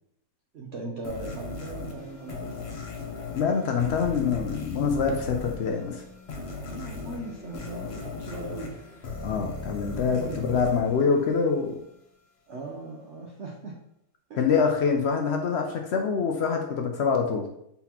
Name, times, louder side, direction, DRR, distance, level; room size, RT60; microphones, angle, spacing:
voice 1, 0.5-2.7 6.6-8.7 10.2-10.4 12.5-13.7 14.3-14.5, right 2 dB, 60° right, -1 dB, 0.7 m, -39 dB
sound 1, 1.0-11.8, left 3 dB, 45° left, 1.0 m, -38 dB
voice 2, 3.4-6.0 9.2-11.7 14.4-17.5, left 5 dB, 75° left, 3 dB, 0.6 m, -25 dB
4.2 x 4.0 x 2.8 m, 0.75 s
omnidirectional pair, 1.7 m